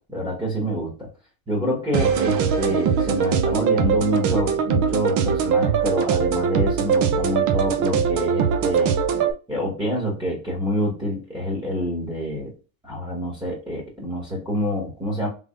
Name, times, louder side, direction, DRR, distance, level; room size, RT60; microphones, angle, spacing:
voice 1, 0.1-1.1 1.5-9.0 9.5-12.5 12.8-15.3, equal, 10° right, -2 dB, 1.5 m, -27 dB
sound 1, 1.9-9.3, right 7 dB, 45° right, 0.6 m, -21 dB
3.5 x 3.4 x 2.4 m, 0.34 s
supercardioid pair, 125°, 44 cm